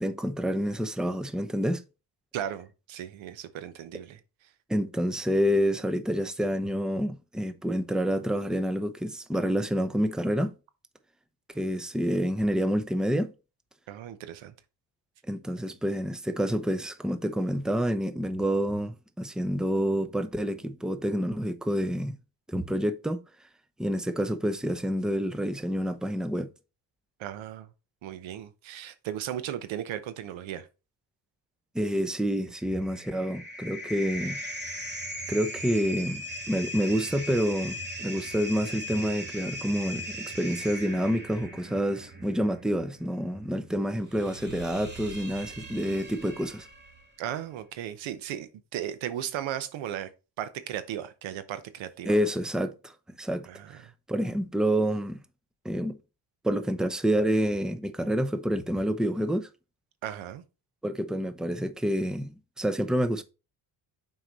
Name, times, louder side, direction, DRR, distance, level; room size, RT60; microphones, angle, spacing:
voice 1, 0.0-1.8 4.7-10.5 11.5-13.3 15.3-22.2 22.5-23.2 23.8-26.5 31.7-34.4 35.3-46.7 52.1-53.8 54.1-55.2 55.6-56.0 56.4-59.5 60.8-63.2, equal, ahead, 0.7 m, -28 dB
voice 2, 2.3-4.2 13.9-14.5 27.2-27.7 28.0-30.7 47.2-50.1 50.4-52.2 53.5-53.8 60.0-60.4, right 11 dB, 80° right, 0.9 m, -36 dB
sound 1, 32.5-47.1, equal, 20° right, 2.2 m, -39 dB
6.0 x 4.6 x 4.1 m
supercardioid pair, 70°, 46 cm